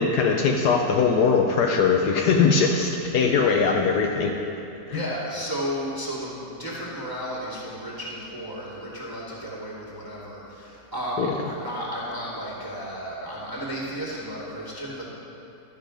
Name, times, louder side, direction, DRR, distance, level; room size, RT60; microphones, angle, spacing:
voice 1, 0.0-4.3 4.9-5.0 11.2-11.3, left 5 dB, 75° left, 1 dB, 1.2 m, -21 dB
voice 2, 4.9-15.1, equal, 10° left, -6 dB, 2.2 m, -33 dB
12.0 x 7.0 x 5.1 m, 2.8 s
omnidirectional pair, 1.8 m